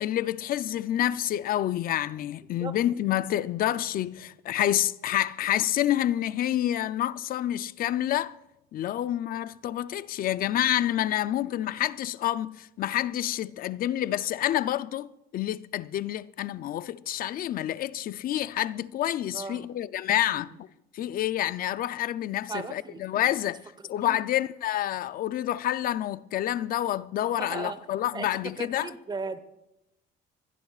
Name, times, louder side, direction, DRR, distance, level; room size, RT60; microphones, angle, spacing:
voice 1, 0.0-8.4 8.7-20.7 20.9-28.9, left 12 dB, 60° left, 0.5 m, -28 dB
voice 2, 19.3-19.7 20.3-20.6 22.5-23.0 24.0-24.2 27.3-27.8 28.1-29.4, right 4 dB, 25° right, 1.1 m, -37 dB
23.0 x 17.0 x 2.4 m
cardioid pair, 110°, 17 cm